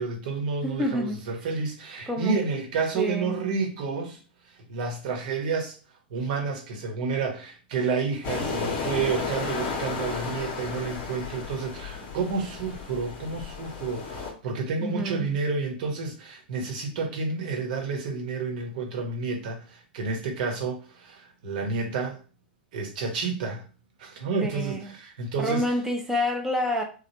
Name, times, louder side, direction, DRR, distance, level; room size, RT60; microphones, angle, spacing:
voice 1, 0.0-4.2 4.7-5.7 6.1-22.2 22.7-23.7 24.0-25.6, right 4 dB, 55° right, 1.0 m, -30 dB
voice 2, 0.6-1.2 2.1-2.4 2.9-3.4 14.8-15.3 24.4-24.9 25.4-26.8, left 1 dB, 5° right, 0.7 m, -28 dB
sound 1, 8.2-14.3, left 4 dB, 40° left, 0.8 m, -33 dB
3.2 x 2.2 x 2.9 m
figure-of-eight pair, 105°, 5 cm